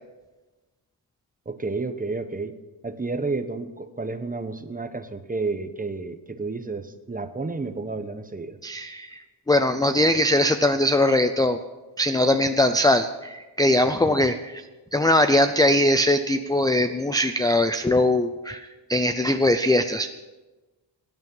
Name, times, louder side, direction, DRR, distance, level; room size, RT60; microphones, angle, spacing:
voice 1, 1.5-2.5 2.8-8.6 14.0-14.2, right 3 dB, 20° right, 9 dB, 1.0 m, -31 dB
voice 2, 8.6-9.2 9.5-11.6 12.0-14.6 14.9-20.2, left 1 dB, 10° left, 9 dB, 0.5 m, -21 dB
19.0 x 10.5 x 5.4 m, 1.2 s
wide cardioid pair, 135°, 44 cm